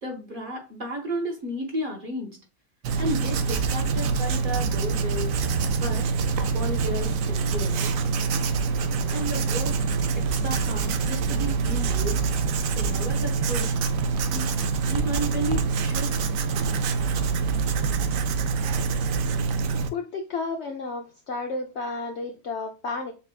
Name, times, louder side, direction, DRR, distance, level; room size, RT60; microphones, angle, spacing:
voice 1, 0.0-2.3 3.0-5.3 5.7-6.1 6.4-7.9 9.1-9.8 10.1-13.7 14.3-14.5 14.9-16.1, equal, 35° right, 1 dB, 1.2 m, -33 dB
Writing, 2.8-19.9, right 5 dB, 70° right, 0.9 m, -25 dB
voice 2, 19.9-23.1, left 3 dB, 65° left, 4 dB, 0.7 m, -32 dB
6.8 x 2.4 x 2.2 m, 0.31 s
omnidirectional pair, 1.6 m